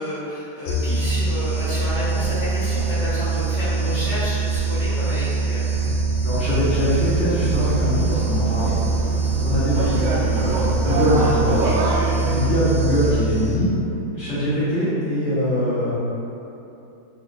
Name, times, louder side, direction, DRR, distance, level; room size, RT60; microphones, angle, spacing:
voice 1, 0.0-5.7 12.2-12.5, equal, 40° left, -13 dB, 1.5 m, -30 dB
sound 1, 0.7-13.8, right 3 dB, 70° left, 1.4 m, -23 dB
Bass drum, 5.8-11.5, right 1 dB, 60° right, 1.3 m, -32 dB
voice 2, 6.2-8.7 9.4-10.0 10.3-13.7 14.1-15.9, equal, 5° left, -14 dB, 0.9 m, -22 dB
sound 2, 6.5-12.4, right 2 dB, 85° right, 1.4 m, -28 dB
4.0 x 3.7 x 2.5 m, 2.9 s
omnidirectional pair, 2.1 m